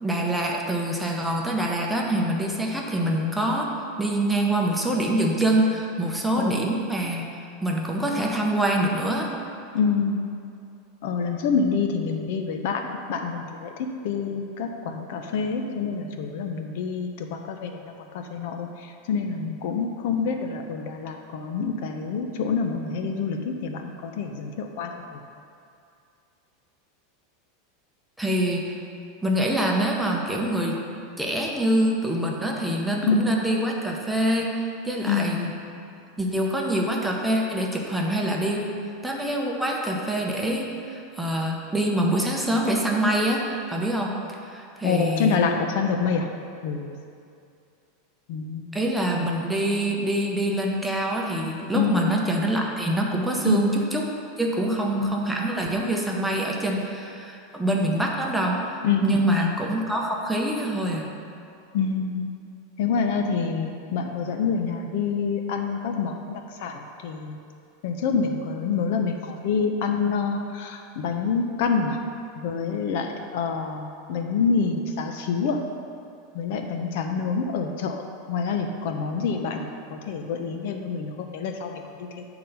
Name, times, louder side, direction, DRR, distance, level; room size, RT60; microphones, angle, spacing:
voice 1, 0.0-7.3 7.6-9.3 28.2-28.7 29.2-30.8 31.2-35.6 36.2-38.8 39.0-44.1 44.4-45.4 48.7-54.1 54.4-61.1, right 1 dB, 5° right, -1 dB, 0.8 m, -25 dB
voice 2, 9.7-10.3 11.0-13.7 14.0-25.2 33.0-33.3 35.1-35.4 44.8-46.3 46.6-47.0 48.3-48.7 51.7-52.1 53.4-53.7 55.0-55.2 58.8-59.6 61.7-62.3 62.8-67.4 67.8-72.0 72.4-75.6 76.3-78.0 78.3-82.2, left 5 dB, 65° left, 5 dB, 0.6 m, -27 dB
8.5 x 3.9 x 5.7 m, 2.5 s
supercardioid pair, 145°, 0 cm